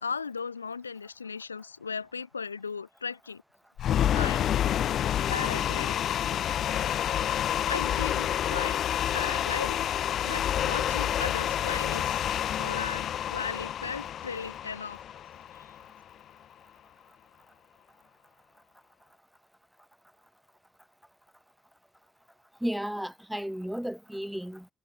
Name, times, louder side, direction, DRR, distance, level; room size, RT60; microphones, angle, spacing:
voice 1, 0.0-3.4 4.1-4.5 5.3-6.0 7.6-9.9 10.2-12.2 12.6-15.0 15.6-15.7, left 5 dB, 85° left, 1.3 m, -36 dB
sound 1, 3.8-15.9, left 10 dB, 55° left, 0.4 m, -28 dB
voice 2, 22.6-24.7, equal, 5° right, 1.3 m, -33 dB
figure-of-eight pair, 45°, 0 cm